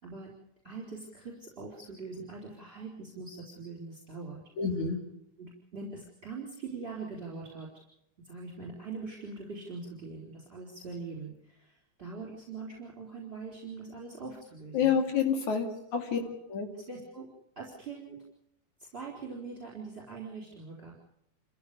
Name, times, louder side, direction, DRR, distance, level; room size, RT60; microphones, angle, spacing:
voice 1, 0.6-4.4 5.4-7.7 8.2-14.9 15.5-15.8 16.1-16.3 16.7-17.3 17.6-18.2 18.8-20.9, right 4 dB, 20° right, 0 dB, 4.4 m, -42 dB
voice 2, 4.6-5.0 14.7-15.7 15.9-16.2 16.5-16.7, left 7 dB, 75° left, 4 dB, 4.2 m, -27 dB
29.0 x 15.0 x 6.9 m, 0.80 s
omnidirectional pair, 3.4 m